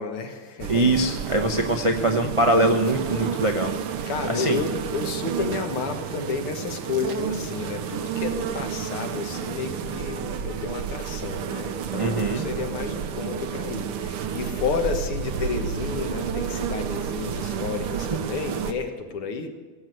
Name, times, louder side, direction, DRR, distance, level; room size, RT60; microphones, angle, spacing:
voice 1, 0.0-1.0 1.7-1.8 4.1-19.5, left 5 dB, 80° left, 5 dB, 2.4 m, -31 dB
sound 1, 0.6-18.7, right 8 dB, 85° right, 1.8 m, -31 dB
voice 2, 0.7-3.7 4.3-4.6 12.0-12.4 18.1-18.2, right 1 dB, 60° right, 3 dB, 0.3 m, -22 dB
17.0 x 8.0 x 9.3 m, 1.4 s
omnidirectional pair, 2.4 m